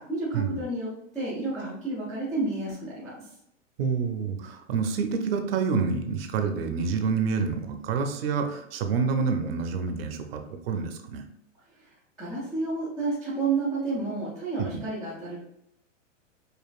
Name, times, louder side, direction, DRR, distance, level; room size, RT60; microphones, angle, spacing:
voice 1, 0.0-3.1 11.8-11.9 12.2-15.4, right 3 dB, ahead, -15 dB, 0.3 m, -30 dB
voice 2, 3.8-11.2 14.7-14.8, right 5 dB, 50° right, 6 dB, 0.6 m, -28 dB
5.1 x 2.5 x 2.3 m, 0.79 s
hypercardioid pair, 145°, 38 cm